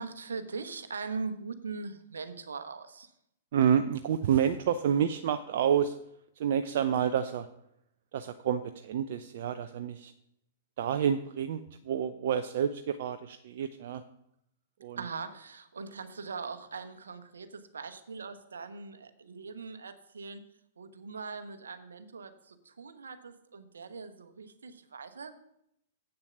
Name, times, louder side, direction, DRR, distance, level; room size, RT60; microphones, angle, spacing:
voice 1, 0.0-3.1 15.0-20.4 20.8-25.4, right 4 dB, 75° right, 9 dB, 1.0 m, -41 dB
voice 2, 3.5-6.0 6.4-7.5 8.1-10.1 10.8-14.0 14.8-15.0, right 8 dB, 60° right, 9 dB, 0.5 m, -29 dB
8.0 x 6.9 x 6.9 m, 0.77 s
figure-of-eight pair, 105°, 0 cm